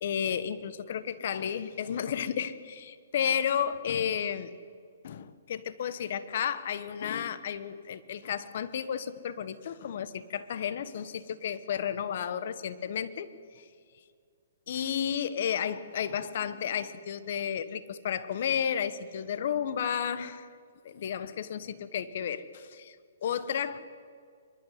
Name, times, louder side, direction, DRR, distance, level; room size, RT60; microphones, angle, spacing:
voice 1, 0.0-4.5 5.0-13.3 13.5-13.7 14.7-20.5 20.8-23.0 23.2-23.8, left 8 dB, 55° left, 14 dB, 1.3 m, -32 dB
26.0 x 13.0 x 9.5 m, 2.2 s
hypercardioid pair, 135°, 0 cm